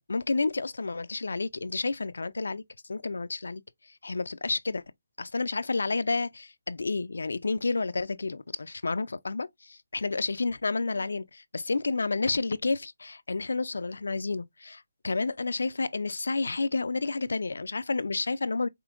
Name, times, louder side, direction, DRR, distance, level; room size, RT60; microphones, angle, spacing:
voice 1, 0.0-2.6 2.9-3.6 4.0-4.8 5.2-18.7, left 3 dB, 75° left, 0.3 m, -30 dB
4.9 x 3.0 x 2.4 m
figure-of-eight pair, 155°, 0 cm